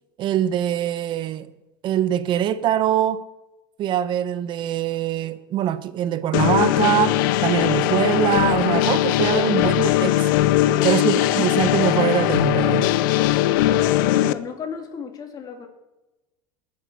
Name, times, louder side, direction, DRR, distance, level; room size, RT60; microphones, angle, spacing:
voice 1, 0.2-1.5 1.8-3.2 3.8-10.3 10.8-12.9, right 11 dB, 45° right, 1.1 m, -23 dB
sound 1, 6.3-14.3, left 14 dB, 70° left, 0.8 m, -20 dB
voice 2, 13.4-15.7, left 6 dB, 35° left, 3.0 m, -35 dB
19.5 x 9.8 x 6.3 m
supercardioid pair, 110°, 11 cm